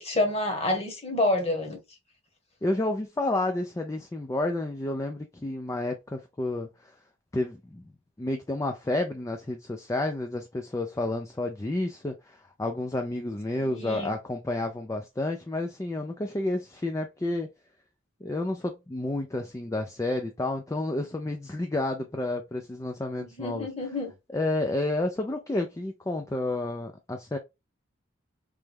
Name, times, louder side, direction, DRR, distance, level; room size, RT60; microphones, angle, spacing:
voice 1, 0.0-1.8 13.7-14.1 23.2-24.1, left 2 dB, 30° left, 1.2 m, -28 dB
voice 2, 2.6-6.9 7.3-7.8 8.2-17.5 18.2-24.0 24.3-27.4, left 2 dB, 15° left, 0.4 m, -30 dB
3.3 x 3.1 x 3.4 m
head